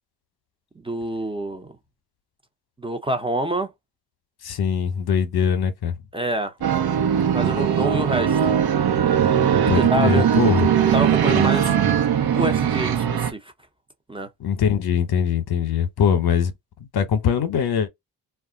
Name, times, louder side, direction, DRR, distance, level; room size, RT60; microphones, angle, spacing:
voice 1, 0.8-1.8 2.8-3.7 6.1-6.5 7.3-8.5 9.7-10.3 10.6-10.7 10.9-11.8 12.3-13.5 14.1-14.3, right 1 dB, 10° right, 0.8 m, -26 dB
voice 2, 4.4-6.0 9.7-10.7 11.3-11.5 14.4-16.5 16.9-17.9, left 7 dB, 60° left, 0.9 m, -22 dB
sound 1, 6.6-13.3, right 9 dB, 55° right, 0.9 m, -20 dB
2.4 x 2.1 x 3.8 m
supercardioid pair, 55°, 44 cm